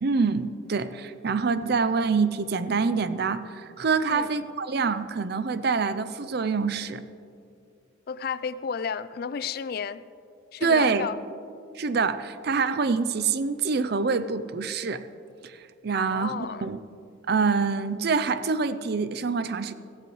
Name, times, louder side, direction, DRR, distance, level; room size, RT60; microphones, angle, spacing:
voice 1, 0.0-7.0 10.6-11.1 11.8-15.0 15.4-15.6 15.8-16.3 16.6-16.8 17.3-19.7, right 5 dB, 50° right, 13 dB, 0.5 m, -25 dB
voice 2, 8.1-10.0 10.5-11.2 15.9-16.7, left 6 dB, 50° left, 15 dB, 0.3 m, -32 dB
15.5 x 15.5 x 3.1 m, 2.5 s
head